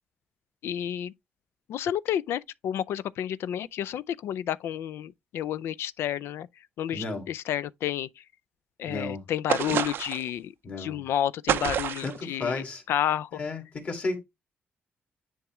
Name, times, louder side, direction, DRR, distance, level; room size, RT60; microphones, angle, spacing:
voice 1, 0.6-1.1 1.7-8.2 8.8-13.4, left 11 dB, 85° left, 0.4 m, -31 dB
voice 2, 6.9-7.2 8.9-9.2 10.6-11.0 12.0-12.8 13.4-14.2, left 3 dB, 35° left, 2.0 m, -33 dB
sound 1, 9.5-10.3 11.5-12.2, right 10 dB, 60° right, 0.4 m, -28 dB
9.9 x 3.5 x 3.0 m
wide cardioid pair, 180°, 4 cm